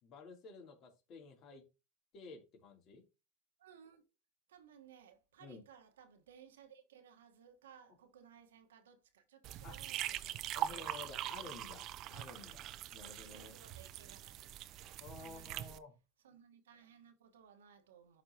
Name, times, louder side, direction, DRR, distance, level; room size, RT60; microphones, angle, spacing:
voice 1, 0.0-1.6 2.1-3.0 5.4-5.6 9.6-9.8 10.5-13.5 15.0-15.9, left 4 dB, 45° left, 3.0 m, -52 dB
voice 2, 3.6-4.0 4.5-10.9 13.3-14.6 15.2-15.7 16.2-18.2, right 8 dB, 90° right, 1.3 m, -60 dB
sound 1, 9.4-15.8, right 12 dB, 50° right, 0.6 m, -43 dB
11.5 x 4.3 x 2.9 m
hypercardioid pair, 105°, 0 cm